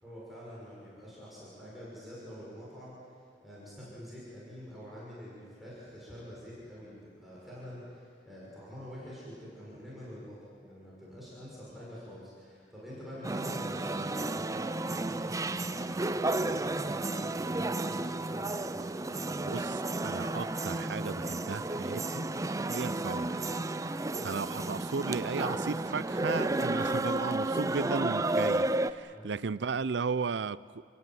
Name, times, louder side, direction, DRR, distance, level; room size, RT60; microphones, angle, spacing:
voice 1, 0.0-19.4 29.1-29.4, equal, ahead, 6.6 m, -47 dB
sound 1, 13.2-28.9, right 2 dB, 20° right, 0.6 m, -32 dB
voice 2, 19.4-19.7 20.0-22.3 22.7-23.5 24.2-30.6, right 4 dB, 70° right, 0.6 m, -35 dB
29.0 x 16.5 x 9.3 m
head